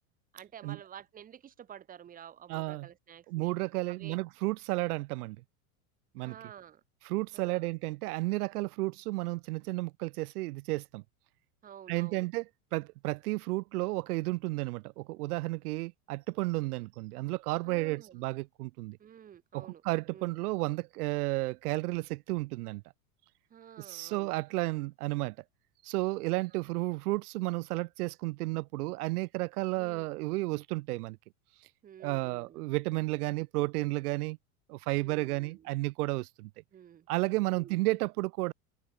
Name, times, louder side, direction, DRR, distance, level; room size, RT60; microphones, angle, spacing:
voice 1, 0.3-3.5 3.9-4.2 6.2-6.8 7.3-7.7 11.6-12.3 17.6-18.2 19.0-19.8 20.1-20.4 23.5-24.3 26.5-26.7 29.7-30.1 31.8-32.7 34.9-35.7 36.7-37.1 37.4-37.8, right 9 dB, 20° right, 1.2 m, -50 dB
voice 2, 2.5-2.9 3.3-5.4 6.1-6.3 7.0-11.0 11.9-12.4 12.7-19.0 19.5-22.8 23.8-25.4 25.8-31.2 32.0-34.4 34.7-36.5 37.1-38.5, right 21 dB, 85° right, 0.5 m, -32 dB
supercardioid pair, 145°, 44 cm